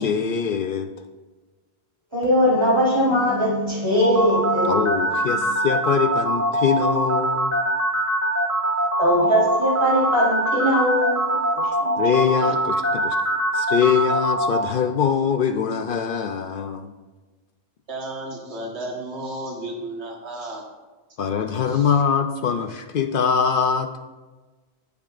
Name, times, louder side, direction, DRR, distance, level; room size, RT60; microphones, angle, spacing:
voice 1, 0.0-0.9 4.6-7.6 12.0-13.2 13.5-16.9 21.2-23.9, left 7 dB, 60° left, 8 dB, 0.6 m, -23 dB
voice 2, 2.1-4.8 9.0-11.4 11.8-11.9, equal, 25° right, -6 dB, 3.6 m, -20 dB
sound 1, 4.0-14.6, right 1 dB, 15° left, 1.1 m, -22 dB
voice 3, 17.9-20.7 21.7-21.8, right 1 dB, 85° right, 1 dB, 1.7 m, -33 dB
17.0 x 7.1 x 2.5 m, 1.2 s
omnidirectional pair, 1.1 m